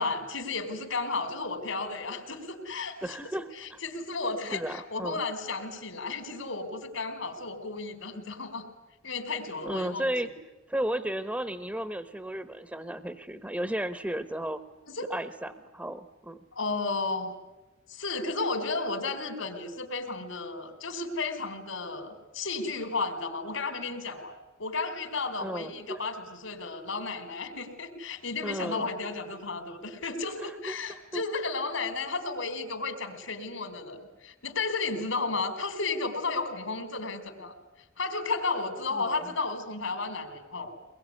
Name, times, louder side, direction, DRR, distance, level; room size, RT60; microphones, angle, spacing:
voice 1, 0.0-3.2 3.6-8.7 9.0-10.1 14.9-15.1 16.5-17.4 17.9-37.5 38.0-40.7, left 3 dB, 75° left, 6 dB, 4.7 m, -33 dB
voice 2, 3.0-3.8 4.5-5.2 9.6-10.3 10.7-14.6 15.1-16.4 25.4-26.0 28.4-28.9 30.4-31.2 38.9-39.3, right 1 dB, 10° right, 11 dB, 1.1 m, -34 dB
24.0 x 22.0 x 9.8 m, 1.1 s
head